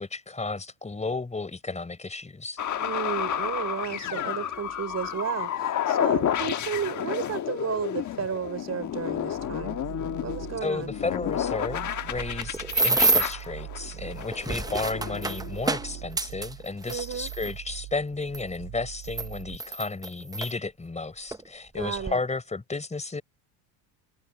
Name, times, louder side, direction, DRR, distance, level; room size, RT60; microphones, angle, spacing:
voice 1, 0.0-2.6 10.6-23.2, left 3 dB, 15° left, 4.2 m, -33 dB
sound 1, 2.6-16.1, left 10 dB, 35° left, 1.3 m, -31 dB
voice 2, 2.8-9.8 10.2-10.9 16.9-17.3 21.7-22.2, right 8 dB, 30° right, 3.6 m, -33 dB
sound 2, 9.3-19.6, right 20 dB, 75° right, 2.1 m, -42 dB
sound 3, 12.1-13.4 14.2-17.5 18.3-18.4 19.0-20.5 21.3-21.4 21.8-22.1, right 3 dB, 10° right, 0.6 m, -27 dB
cardioid pair, 125°, 49 cm